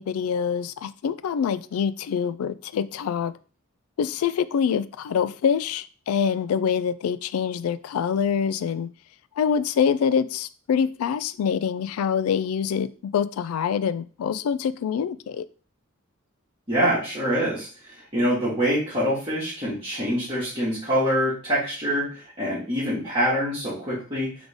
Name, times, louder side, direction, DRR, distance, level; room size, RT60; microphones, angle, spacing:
voice 1, 0.0-3.3 4.0-8.9 9.4-15.5, left 7 dB, 90° left, 0.3 m, -25 dB
voice 2, 16.7-24.3, equal, 25° right, 1.6 m, -25 dB
3.8 x 3.5 x 3.5 m
head